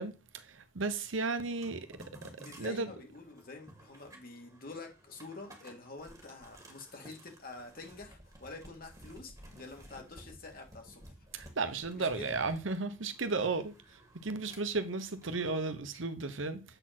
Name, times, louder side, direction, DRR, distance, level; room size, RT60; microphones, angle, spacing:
voice 1, 0.0-1.9 2.6-3.0 11.3-13.7 14.2-16.6, right 3 dB, 75° right, 1.0 m, -34 dB
sound 1, 1.4-15.7, right 1 dB, 15° right, 2.2 m, -55 dB
voice 2, 2.4-11.0 11.9-12.4, left 3 dB, 45° left, 2.3 m, -47 dB
7.8 x 4.4 x 6.0 m
head